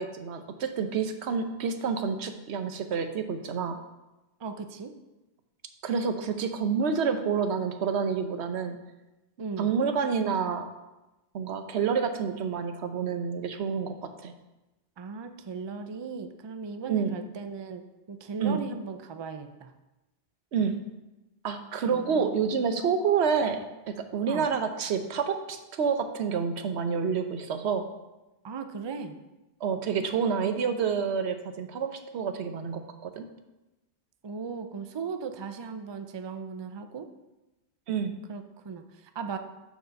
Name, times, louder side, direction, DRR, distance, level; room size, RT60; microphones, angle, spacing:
voice 1, 0.0-3.8 5.8-8.8 9.6-10.7 11.3-14.3 16.9-17.1 18.4-18.6 20.5-20.7 21.4-27.8 29.6-33.3 37.9-38.1, right 6 dB, 85° right, 8 dB, 1.0 m, -28 dB
voice 2, 4.4-4.9 9.4-9.7 15.0-17.8 18.1-19.7 21.9-22.8 24.3-24.5 28.4-29.2 34.2-37.1 38.3-39.4, right 5 dB, 35° right, 8 dB, 0.4 m, -37 dB
6.7 x 4.9 x 6.4 m, 1.0 s
omnidirectional pair, 1.1 m